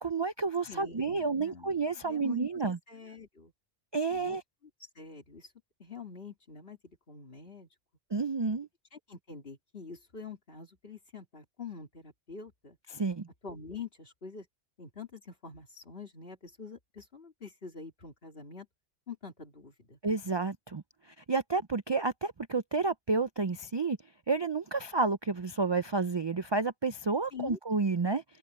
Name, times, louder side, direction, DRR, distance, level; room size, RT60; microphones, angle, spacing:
voice 1, 0.0-2.8 3.9-4.4 8.1-8.7 12.9-13.3 20.0-24.0 24.3-28.2, right 4 dB, 35° right, 0.4 m, -30 dB
voice 2, 0.7-2.4 2.9-3.5 4.1-4.4 4.8-5.5 5.8-7.7 8.9-12.8 13.4-14.5 14.8-18.7 19.1-20.0 27.3-27.6, left 5 dB, 55° left, 3.1 m, -45 dB
omnidirectional pair, 1.2 m